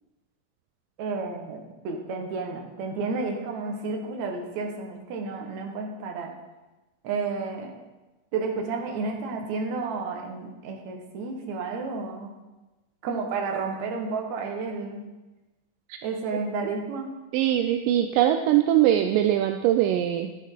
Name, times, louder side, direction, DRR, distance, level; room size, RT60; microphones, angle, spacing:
voice 1, 1.0-6.3 7.0-7.7 8.3-12.3 13.0-15.0 16.0-17.1, right 4 dB, 60° right, 3 dB, 2.2 m, -31 dB
voice 2, 17.3-20.3, right 12 dB, 80° right, 7 dB, 2.0 m, -21 dB
11.0 x 8.0 x 4.5 m, 1.1 s
omnidirectional pair, 4.2 m